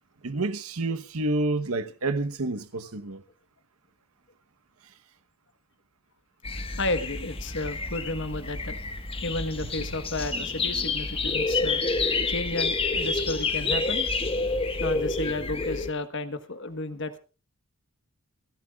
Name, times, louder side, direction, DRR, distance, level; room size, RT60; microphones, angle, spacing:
voice 1, 0.2-3.2 4.8-4.9 9.6-10.0, right 2 dB, 75° right, 1.1 m, -29 dB
sound 1, 6.4-15.9, left 3 dB, 25° left, 1.5 m, -28 dB
voice 2, 6.8-8.8 9.2-11.8 12.3-14.1 14.8-17.2, left 2 dB, 55° left, 1.3 m, -32 dB
27.5 x 12.0 x 2.4 m
head